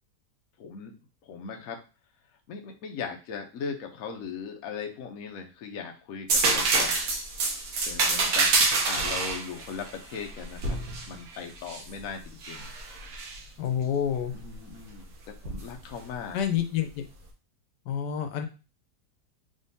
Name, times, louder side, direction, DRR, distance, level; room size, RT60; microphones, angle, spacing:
voice 1, 0.6-0.9 1.2-1.8 2.5-7.1 7.8-8.6 8.9-10.8 11.1-12.7 14.3-15.1 15.4-16.4, left 6 dB, 65° left, 3 dB, 1.0 m, -38 dB
sound 1, 6.3-11.9 12.4-13.4 15.4-15.6, right 3 dB, 65° right, 1.3 m, -26 dB
voice 2, 13.6-14.3 16.3-17.0 17.9-18.5, left 9 dB, 90° left, 6 dB, 1.3 m, -28 dB
3.7 x 3.6 x 2.7 m, 0.32 s
omnidirectional pair, 1.8 m